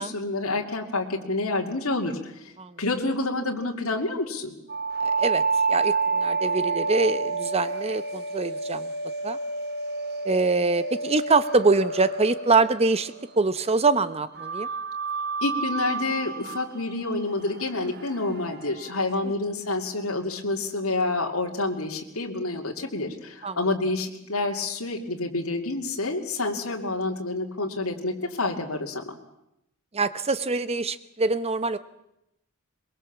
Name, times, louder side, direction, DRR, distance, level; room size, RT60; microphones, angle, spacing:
voice 1, 0.0-2.5 2.8-4.5 15.4-29.2, left 2 dB, 80° left, 1 dB, 2.6 m, -28 dB
sound 1, 4.7-13.5 14.4-19.1, right 4 dB, 50° right, 2.3 m, -29 dB
voice 2, 5.0-5.4 5.7-8.9 9.2-9.4 10.2-14.7 23.4-23.6 29.9-31.8, right 3 dB, 30° right, 14 dB, 0.8 m, -24 dB
22.5 x 22.5 x 7.3 m, 0.84 s
head